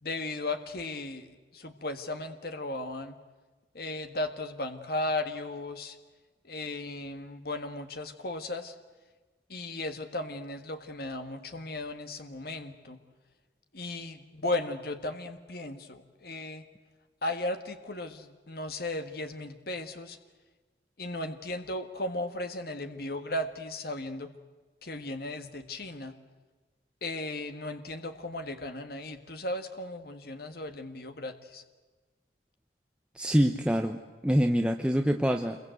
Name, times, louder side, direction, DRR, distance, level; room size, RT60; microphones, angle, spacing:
voice 1, 0.0-3.2 3.7-6.0 6.4-8.7 9.5-13.0 13.7-16.6 17.2-20.2 21.0-24.3 24.8-26.1 27.0-31.6, left 2 dB, 55° left, 7 dB, 1.6 m, -36 dB
voice 2, 33.1-35.6, equal, 5° right, 4 dB, 0.9 m, -25 dB
27.5 x 23.0 x 8.0 m, 1.3 s
head